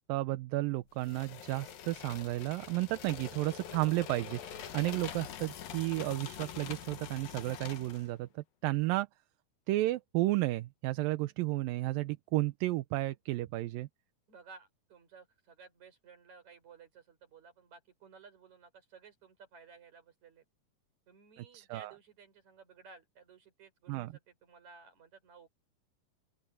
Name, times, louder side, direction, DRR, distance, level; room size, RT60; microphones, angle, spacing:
voice 1, 0.1-9.1 9.7-13.9 21.4-21.9 23.9-24.1, right 18 dB, 80° right, 2.4 m, -33 dB
sound 1, 1.0-8.1, left 9 dB, 75° left, 3.2 m, -45 dB
voice 2, 14.3-20.4 21.1-25.5, right 5 dB, 50° right, 6.3 m, -56 dB
open air
omnidirectional pair, 4.1 m